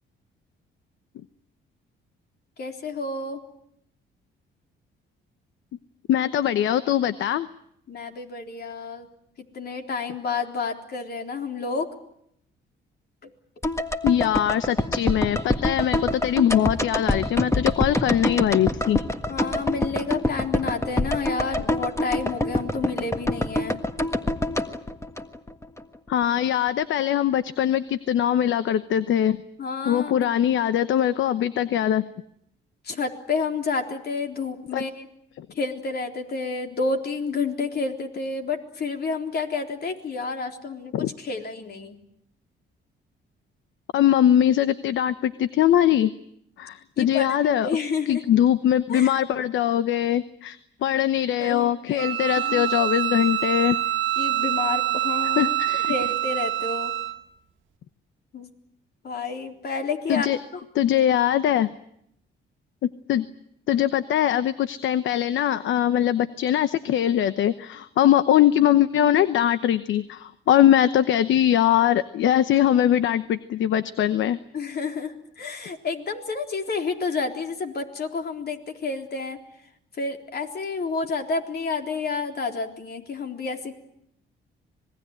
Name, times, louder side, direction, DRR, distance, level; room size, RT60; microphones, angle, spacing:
voice 1, 2.6-3.4 7.9-9.1 9.4-11.9 13.2-13.3 19.3-23.8 29.6-30.3 32.8-35.1 35.5-42.0 47.0-48.2 48.9-49.1 51.4-52.7 54.2-55.5 55.9-56.9 58.3-58.5 59.0-60.3 60.5-60.6 74.5-79.4 80.0-83.7, left 4 dB, 55° left, 4 dB, 3.8 m, -30 dB
voice 2, 6.1-7.5 14.0-19.0 26.1-29.4 29.9-32.1 34.7-34.8 35.4-35.5 40.9-41.1 43.9-46.1 46.6-47.7 48.1-53.8 55.4-55.9 60.1-60.4 60.7-61.7 62.8-63.3 63.7-74.4, left 11 dB, 75° left, 13 dB, 1.0 m, -21 dB
sound 1, 13.6-25.8 26.1-26.2, left 1 dB, 15° left, 1.6 m, -26 dB
Bowed string instrument, 52.0-57.2, right 13 dB, 75° right, 1.7 m, -25 dB
26.5 x 20.5 x 9.0 m, 0.74 s
cardioid pair, 90°, 20 cm